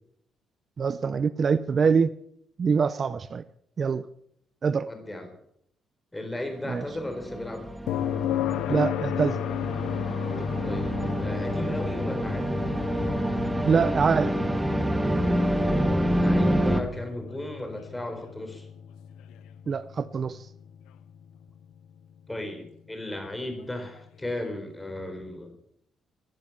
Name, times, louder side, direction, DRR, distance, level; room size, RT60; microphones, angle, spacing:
voice 1, 0.8-2.1 2.6-3.4 3.8-4.1 4.6-4.9 6.7-6.8 8.7-9.4 13.7-14.3 19.7-20.5, right 5 dB, 45° right, 0.6 m, -24 dB
voice 2, 4.9-5.3 6.1-7.7 10.6-12.6 15.7-18.7 22.3-25.5, left 1 dB, 10° left, 4.2 m, -36 dB
sound 1, 6.6-16.8, equal, 10° right, 1.6 m, -27 dB
sound 2, 7.9-21.7 24.0-24.1, left 10 dB, 90° left, 0.6 m, -34 dB
15.5 x 10.5 x 7.2 m
cardioid pair, 90°, 0 cm